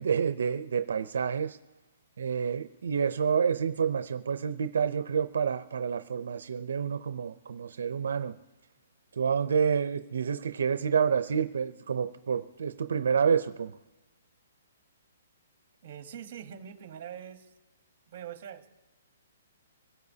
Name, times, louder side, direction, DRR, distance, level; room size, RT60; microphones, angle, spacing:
voice 1, 0.0-1.6 2.2-8.4 9.1-13.7, right 6 dB, 75° right, 0.5 m, -28 dB
voice 2, 15.8-17.5 18.1-18.7, right 9 dB, 35° right, 1.2 m, -43 dB
25.5 x 17.0 x 2.8 m
hypercardioid pair, 170°, 0 cm